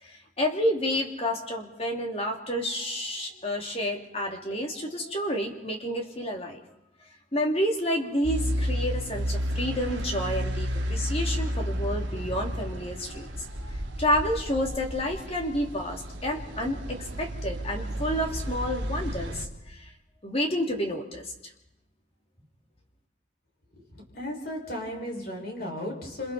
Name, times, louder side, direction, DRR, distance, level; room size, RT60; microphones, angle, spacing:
voice 1, 0.0-6.6 7.3-19.9 20.2-21.3, equal, 30° left, 1 dB, 3.1 m, -30 dB
sound 1, 8.2-19.5, equal, 70° right, 3.0 m, -32 dB
voice 2, 23.8-26.3, left 1 dB, 50° left, 0 dB, 6.1 m, -35 dB
28.5 x 28.0 x 4.4 m, 0.86 s
head